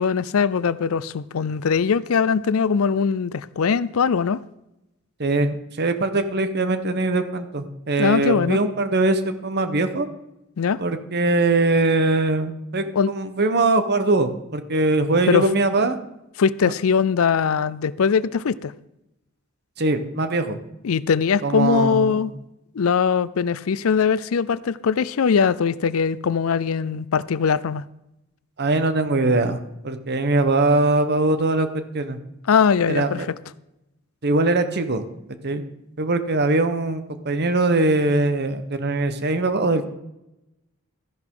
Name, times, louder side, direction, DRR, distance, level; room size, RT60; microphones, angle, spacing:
voice 1, 0.0-4.4 8.0-8.6 10.6-10.8 12.9-13.1 15.3-15.4 16.4-18.7 20.8-22.3 22.7-27.8 32.5-33.3, left 6 dB, 75° left, 18 dB, 0.5 m, -21 dB
voice 2, 5.2-10.1 10.8-16.0 19.8-20.6 21.4-22.3 28.6-29.6 29.8-31.7 31.9-32.2 32.9-33.3 34.2-35.0 35.4-35.6 36.0-39.9, right 2 dB, 50° right, 9 dB, 1.1 m, -21 dB
13.5 x 11.0 x 3.8 m, 0.90 s
head